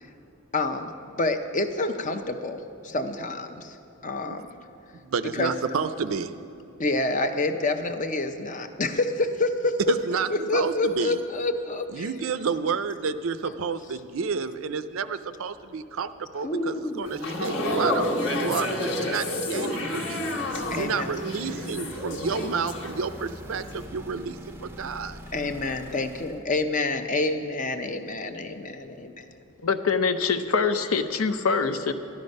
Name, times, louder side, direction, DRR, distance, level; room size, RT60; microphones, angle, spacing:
voice 1, 0.5-3.8 4.0-4.5 5.3-5.5 6.8-9.8 10.3-12.1 16.4-17.1 20.7-21.2 25.3-29.4, left 2 dB, 35° left, 8 dB, 0.6 m, -28 dB
voice 2, 4.9-6.3 9.9-11.2 11.9-20.3 20.7-25.2, right 5 dB, 65° right, 12 dB, 0.5 m, -30 dB
sound 1, 17.1-23.3 23.6-23.9, left 1 dB, 55° left, 1.4 m, -29 dB
sound 2, 20.4-26.5, equal, 10° right, 0.5 m, -42 dB
voice 3, 29.6-31.9, left 5 dB, 75° left, 9 dB, 0.7 m, -24 dB
13.5 x 12.0 x 5.3 m, 2.8 s
head